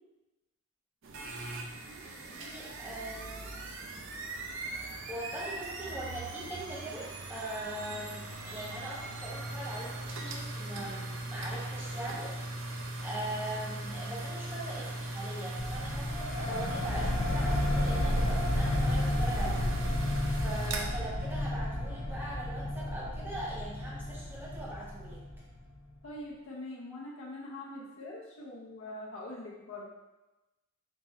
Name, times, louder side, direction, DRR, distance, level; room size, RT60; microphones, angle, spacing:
sound 1, 1.0-20.8, right 2 dB, 60° right, 0.5 m, -39 dB
voice 1, 2.0-4.0 4.6-4.8 5.1-20.1 20.4-25.2, right 1 dB, 10° right, -6 dB, 1.0 m, -41 dB
sound 2, 15.6-25.8, left 1 dB, 40° left, 1.1 m, -32 dB
voice 2, 26.0-29.9, left 1 dB, 65° left, -4 dB, 0.8 m, -43 dB
3.7 x 2.6 x 4.1 m, 1.0 s
head